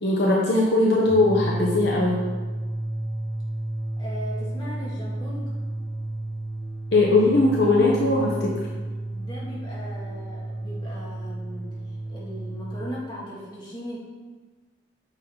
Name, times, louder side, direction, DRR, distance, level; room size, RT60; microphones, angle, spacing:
voice 1, 0.0-2.3 6.9-8.7, left 2 dB, 60° left, -3 dB, 1.2 m, -20 dB
sound 1, 1.0-12.9, right 1 dB, 5° right, 0.5 m, -32 dB
voice 2, 4.0-5.5 8.2-8.5 9.1-11.7 12.1-14.0, equal, 25° left, -7 dB, 2.8 m, -38 dB
9.1 x 6.3 x 4.1 m, 1.3 s
head